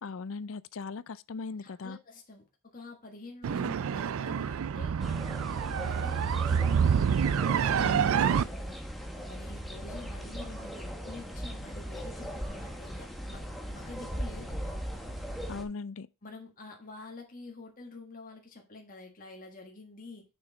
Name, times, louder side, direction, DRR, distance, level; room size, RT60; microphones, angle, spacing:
voice 1, 0.0-2.0 7.8-8.2 15.5-16.1, left 4 dB, 60° left, 0.5 m, -39 dB
voice 2, 1.6-4.9 5.7-7.0 7.5-8.8 9.2-14.8 16.2-20.2, left 3 dB, 40° left, 1.6 m, -48 dB
sound 1, 3.4-8.4, right 7 dB, 65° right, 0.3 m, -27 dB
sound 2, 5.0-15.6, equal, ahead, 1.2 m, -39 dB
6.5 x 6.4 x 3.9 m
head